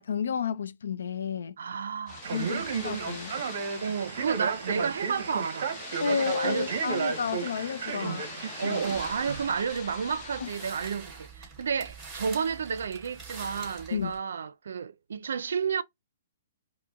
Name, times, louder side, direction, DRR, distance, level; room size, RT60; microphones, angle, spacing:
voice 1, 0.1-1.6 2.3-2.6 2.8-3.4 6.0-8.2 8.6-8.8 10.4-10.5 13.9-14.1, left 6 dB, 80° left, 0.5 m, -31 dB
voice 2, 1.6-2.7 3.8-5.7 6.1-7.0 8.0-8.2 8.6-15.8, right 6 dB, 75° right, 0.5 m, -31 dB
sound 1, 2.1-10.7, left 4 dB, 20° left, 1.0 m, -43 dB
Male speech man speaking, 2.2-9.5, right 6 dB, 50° right, 0.9 m, -33 dB
sound 2, 8.8-14.2, right 4 dB, 10° right, 2.5 m, -45 dB
4.8 x 2.1 x 3.5 m
hypercardioid pair, 170°, 0 cm